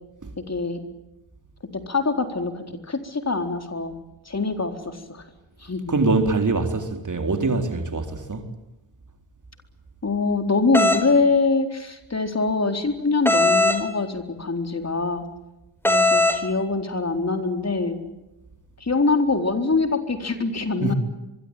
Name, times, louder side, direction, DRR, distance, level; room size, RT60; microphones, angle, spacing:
voice 1, 0.5-0.8 1.7-3.9 4.3-5.2 5.6-5.9 10.0-15.2 15.8-18.0 18.8-20.9, left 3 dB, 30° left, 4.2 m, -24 dB
voice 2, 5.9-8.5 20.8-20.9, right 3 dB, 35° right, 4.1 m, -23 dB
sound 1, 10.7-11.0 13.3-13.8 15.8-16.4, left 2 dB, 5° left, 4.1 m, -18 dB
24.0 x 23.5 x 9.2 m
supercardioid pair, 50°, 49 cm